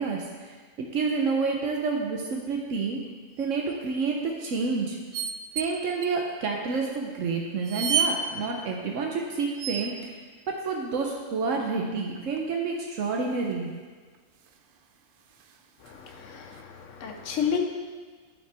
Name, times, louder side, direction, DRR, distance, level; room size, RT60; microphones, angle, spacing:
voice 1, 0.0-3.0 3.4-5.0 5.5-10.2 10.5-13.7, right 4 dB, 75° right, 0 dB, 1.2 m, -29 dB
sound 1, 3.4-3.7 5.1-5.7 6.0-6.1 6.9-7.0 7.6-8.2 9.6-10.1 12.1-12.6 14.1-14.2 14.4-14.6 15.3-16.1 16.5-16.6, right 7 dB, 60° right, 0.6 m, -30 dB
voice 2, 15.8-17.6, left 7 dB, 75° left, 4 dB, 1.1 m, -31 dB
12.5 x 5.7 x 3.4 m, 1.5 s
omnidirectional pair, 1.3 m